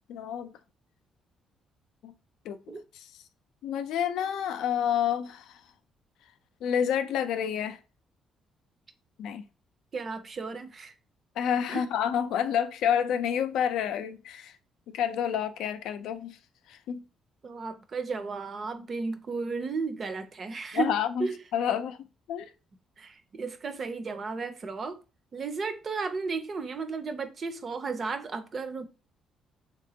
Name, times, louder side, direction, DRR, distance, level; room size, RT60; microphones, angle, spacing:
voice 1, 0.1-0.5 2.0-2.1 2.4-2.6 3.6-5.6 6.6-7.8 9.2-9.4 11.4-14.6 14.9-16.4 16.7-17.0 20.7-22.0 22.3-22.5, left 9 dB, 85° left, 0.4 m, -29 dB
voice 2, 9.9-10.9 11.7-11.8 17.4-20.9 21.2-21.4 23.0-25.0 25.3-28.8, right 4 dB, 40° right, 0.5 m, -34 dB
3.3 x 2.9 x 2.7 m
cardioid pair, 110°, 0 cm